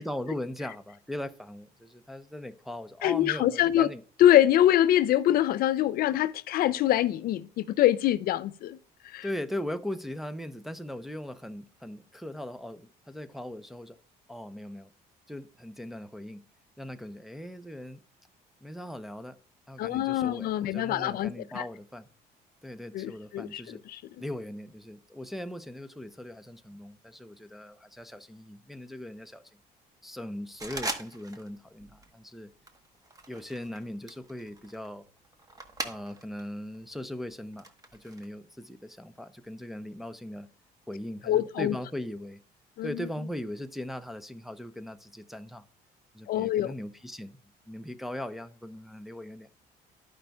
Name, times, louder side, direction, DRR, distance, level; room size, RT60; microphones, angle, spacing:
voice 1, 0.0-4.0 9.2-14.0 14.3-14.9 15.3-16.4 16.8-18.0 18.6-19.4 19.7-22.1 22.6-23.8 24.2-29.4 30.0-32.5 33.3-35.0 35.8-37.7 37.9-40.5 40.9-42.4 42.8-45.6 46.1-47.4 47.7-49.5, left 1 dB, ahead, 0.5 m, -39 dB
voice 2, 3.0-3.9 4.2-8.8 9.0-9.3 19.8-21.6 22.9-24.0 41.3-41.8 42.8-42.9 46.3-46.7, left 12 dB, 60° left, 0.4 m, -24 dB
sound 1, 30.6-31.5 31.8-32.2 32.7-36.4 36.7-38.3, right 2 dB, 20° right, 1.0 m, -40 dB
13.5 x 5.1 x 2.3 m
cardioid pair, 110°, 17 cm